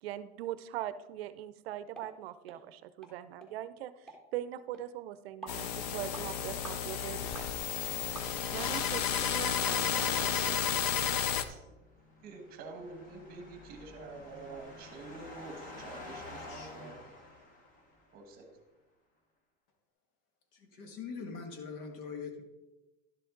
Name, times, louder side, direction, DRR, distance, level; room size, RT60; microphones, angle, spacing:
voice 1, 0.0-10.6, right 12 dB, 65° right, 14 dB, 0.6 m, -42 dB
sound 1, 1.9-2.1 2.5-2.6 3.0-3.1 3.4-3.5 4.1-4.2 4.7-4.8 5.4-5.6 6.1-6.3 6.6-6.8 7.3-7.5 8.2-8.6 9.1-9.2 9.7-9.8 10.2-10.3, right 3 dB, ahead, 1.4 m, -47 dB
sound 2, 5.5-11.4, left 8 dB, 40° left, 0.6 m, -32 dB
voice 2, 11.5-11.9 12.2-17.0 18.1-18.5, right 3 dB, 30° right, 5 dB, 1.2 m, -47 dB
sound 3, 11.8-18.1, left 2 dB, 25° left, 1.4 m, -49 dB
voice 3, 16.5-17.0 20.5-22.4, left 5 dB, 60° left, 5 dB, 1.8 m, -43 dB
11.5 x 7.7 x 3.8 m, 1.1 s
supercardioid pair, 170°, 32 cm